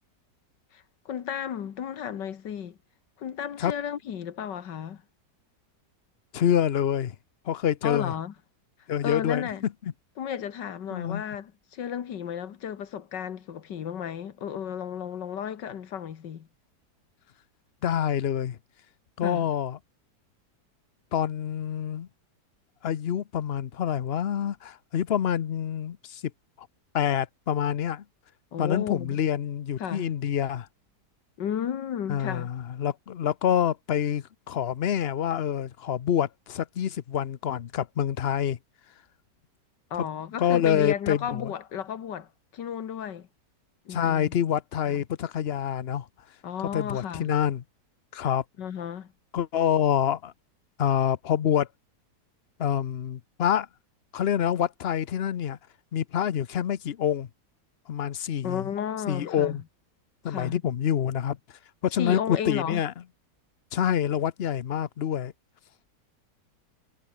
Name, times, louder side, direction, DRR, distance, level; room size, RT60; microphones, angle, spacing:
voice 1, 0.7-2.8 3.2-5.0 7.8-8.3 9.0-9.7 10.2-16.5 19.2-19.5 28.5-29.2 29.8-30.1 31.4-32.5 39.9-43.3 43.9-44.4 44.9-45.0 46.4-47.3 48.6-49.1 58.4-59.6 60.3-60.6 62.0-62.8, left 9 dB, 85° left, 2.0 m, -33 dB
voice 2, 6.3-7.1 7.5-8.1 8.9-9.7 10.9-11.2 17.8-18.6 19.2-19.8 21.1-22.1 22.8-26.2 26.6-26.7 26.9-28.0 28.6-30.7 32.1-38.6 40.0-40.1 40.4-41.5 43.9-46.1 46.7-47.6 48.1-48.4 49.3-50.3 50.8-51.7 52.6-53.7 54.1-55.6 55.9-57.3 57.9-58.7 59.1-59.6 60.2-61.4 61.8-62.9 63.7-65.3, left 9 dB, 50° left, 0.7 m, -26 dB
omnidirectional pair, 1.9 m